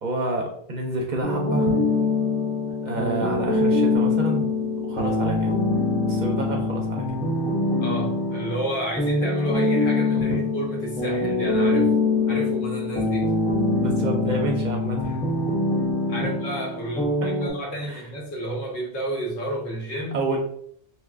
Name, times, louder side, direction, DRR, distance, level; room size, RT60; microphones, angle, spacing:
voice 1, 0.0-1.9 2.8-4.5 4.8-5.5 6.1-7.2 10.1-10.4 13.8-15.2 17.8-18.0 20.1-20.4, right 2 dB, 50° right, 1 dB, 0.6 m, -28 dB
sound 1, 1.2-17.5, left 3 dB, 10° left, 0.3 m, -24 dB
voice 2, 7.8-11.9 12.3-13.3 16.1-20.2, right 1 dB, 85° left, -2 dB, 1.3 m, -31 dB
3.4 x 3.0 x 2.3 m, 0.66 s
omnidirectional pair, 1.1 m